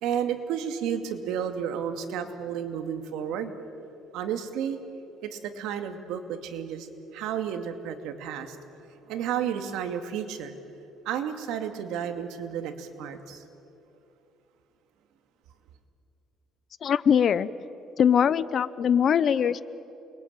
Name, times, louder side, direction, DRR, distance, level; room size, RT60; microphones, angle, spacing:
voice 1, 0.0-3.5 4.1-4.8 5.2-6.9 7.1-8.6 9.1-10.5 11.0-13.4, right 8 dB, 85° right, 6 dB, 2.4 m, -32 dB
voice 2, 16.8-17.5 18.0-19.6, left 8 dB, 40° left, 17 dB, 0.7 m, -22 dB
29.0 x 22.0 x 8.9 m, 2.8 s
cardioid pair, 155°, 0 cm